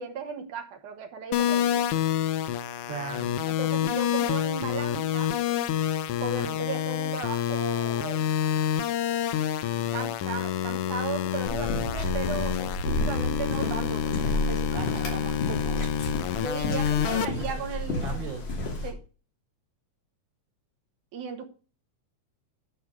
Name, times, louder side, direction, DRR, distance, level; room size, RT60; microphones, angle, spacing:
voice 1, 0.0-1.9 3.5-5.3 6.2-8.3 9.9-15.9 16.4-18.3 18.8-19.0 21.1-21.5, right 5 dB, 85° right, 3 dB, 2.9 m, -36 dB
sound 1, 1.3-17.2, left 10 dB, 80° left, 1.3 m, -28 dB
voice 2, 2.9-3.3 17.0-18.6, right 5 dB, 60° right, -2 dB, 4.4 m, -37 dB
sound 2, 11.5-18.9, left 1 dB, 60° left, 3.9 m, -31 dB
10.5 x 4.9 x 6.4 m, 0.36 s
omnidirectional pair, 3.4 m